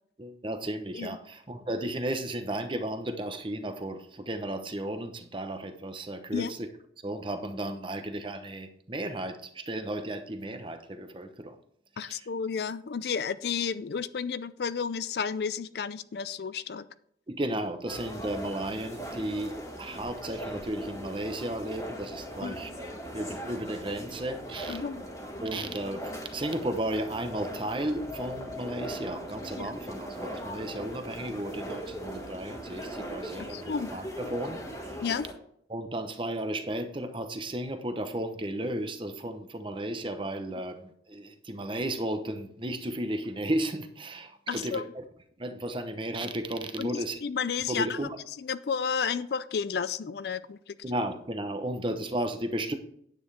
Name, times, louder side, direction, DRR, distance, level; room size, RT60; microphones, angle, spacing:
voice 1, 0.2-6.7 7.0-11.5 12.1-12.3 17.3-24.8 25.4-35.0 35.7-45.0 45.4-47.2 47.7-48.2 50.8-52.7, right 1 dB, 25° right, 0.8 m, -34 dB
voice 2, 12.0-16.9 22.4-22.6 24.7-25.0 29.6-29.8 33.5-33.9 35.0-35.3 44.5-44.8 46.8-48.1 48.4-50.8, left 6 dB, 60° left, 0.4 m, -32 dB
sound 1, 17.9-35.3, equal, 15° left, 1.6 m, -40 dB
9.9 x 8.7 x 3.4 m
head